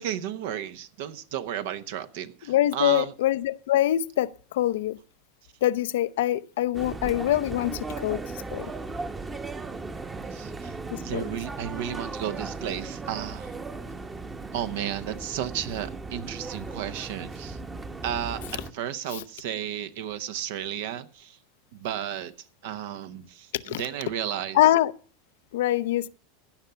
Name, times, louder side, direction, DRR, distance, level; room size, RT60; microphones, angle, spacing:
voice 1, 0.0-3.1 10.3-10.8 11.0-13.5 14.5-17.6 18.0-21.4 21.7-22.3 22.6-24.6, right 10 dB, 70° right, 1.0 m, -33 dB
voice 2, 2.5-5.0 5.6-8.2 8.5-8.7 10.9-11.2 19.1-19.2 23.5-23.8 24.5-24.9 25.5-26.1, left 13 dB, 75° left, 0.5 m, -24 dB
sound 1, 6.7-18.7, right 3 dB, 20° right, 1.0 m, -37 dB
16.0 x 5.8 x 6.8 m
hypercardioid pair, 105°, 0 cm